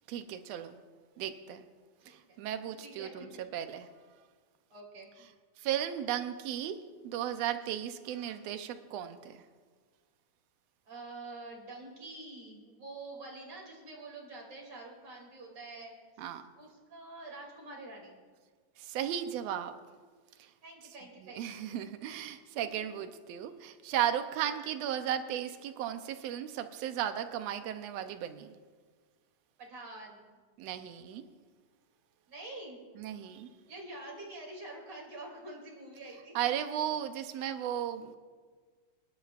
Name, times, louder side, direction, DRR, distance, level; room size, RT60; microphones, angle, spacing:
voice 1, 0.1-0.8 1.2-1.6 2.1-3.8 5.6-6.8 7.0-9.4 16.2-16.4 18.8-19.7 20.4-20.5 21.2-28.5 30.6-31.2 33.0-33.5 36.3-38.2, right 10 dB, 80° right, 9 dB, 1.5 m, -35 dB
voice 2, 2.0-3.1 4.7-5.1 10.9-16.3 16.6-18.2 20.6-21.8 22.7-22.8 29.6-30.4 32.3-32.8 33.7-36.4, right 2 dB, 45° right, -1 dB, 3.5 m, -47 dB
26.5 x 11.5 x 2.5 m, 1.5 s
omnidirectional pair, 3.7 m